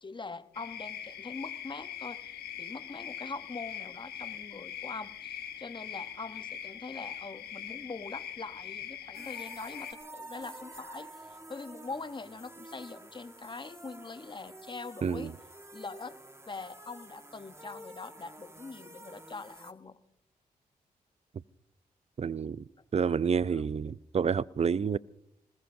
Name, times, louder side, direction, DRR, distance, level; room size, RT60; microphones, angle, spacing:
voice 1, 0.0-15.3 15.7-16.2 16.5-20.0 23.5-23.7, left 4 dB, 30° left, 1.0 m, -43 dB
sound 1, 0.5-9.9, left 9 dB, 85° left, 1.1 m, -42 dB
sound 2, 9.1-19.7, right 1 dB, 15° right, 1.7 m, -49 dB
voice 2, 15.0-15.3 22.2-22.7 22.9-25.0, right 6 dB, 40° right, 0.5 m, -29 dB
26.5 x 20.5 x 2.7 m
supercardioid pair, 45°, 16 cm